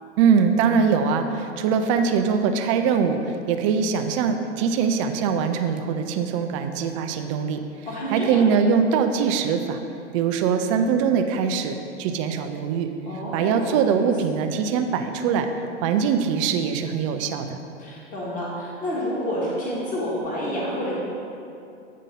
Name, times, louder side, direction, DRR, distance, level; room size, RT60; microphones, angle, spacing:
voice 1, 0.2-7.6 8.1-9.8 10.1-12.9 13.3-15.5 15.8-17.6, right 6 dB, 30° right, 7 dB, 0.4 m, -22 dB
voice 2, 7.9-8.4 13.0-14.1 17.8-21.0, equal, 20° left, -6 dB, 1.6 m, -29 dB
8.4 x 3.8 x 5.4 m, 2.6 s
hypercardioid pair, 125°, 37 cm